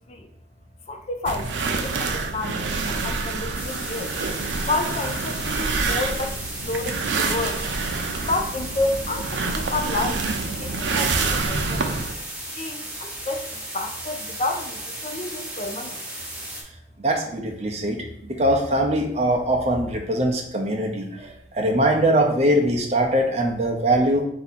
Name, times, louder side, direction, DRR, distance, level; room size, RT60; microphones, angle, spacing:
voice 1, 0.9-4.1 4.7-7.6 8.3-11.9 12.5-16.0, left 2 dB, 35° left, 4 dB, 0.4 m, -30 dB
sound 1, 1.3-12.1, right 4 dB, 85° right, 0.5 m, -27 dB
sound 2, 3.5-16.6, right 1 dB, 5° right, 0.9 m, -35 dB
voice 2, 17.0-24.3, right 1 dB, 35° right, 2 dB, 0.7 m, -22 dB
4.6 x 2.8 x 4.1 m, 0.70 s
head